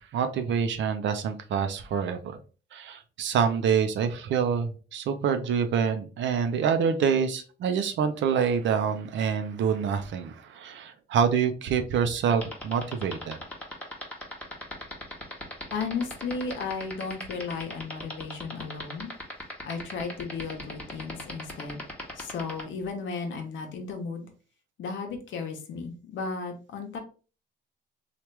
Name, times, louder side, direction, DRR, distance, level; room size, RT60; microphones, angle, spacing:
voice 1, 0.1-2.4 2.7-13.4, right 7 dB, 70° right, 7 dB, 0.6 m, -26 dB
sound 1, 12.3-22.6, left 1 dB, 5° left, 1.0 m, -37 dB
voice 2, 15.7-19.1 19.6-21.8 22.2-24.3 24.8-27.0, left 4 dB, 75° left, 4 dB, 0.9 m, -34 dB
3.1 x 2.4 x 3.2 m, 0.36 s
cardioid pair, 90°, 20 cm